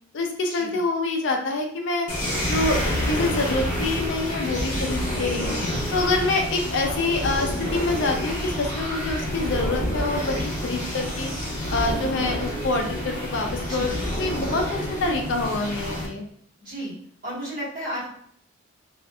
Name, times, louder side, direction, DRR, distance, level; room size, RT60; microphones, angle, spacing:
voice 1, 0.1-2.1 2.4-5.5 5.9-11.3 11.7-16.2, left 2 dB, 65° left, 3 dB, 0.4 m, -26 dB
sound 1, 2.1-16.1, left 1 dB, 40° left, 0.8 m, -28 dB
voice 2, 5.4-5.9 13.7-14.1 16.6-17.0 17.2-18.1, equal, 45° right, -8 dB, 1.4 m, -34 dB
2.6 x 2.4 x 2.2 m, 0.63 s
head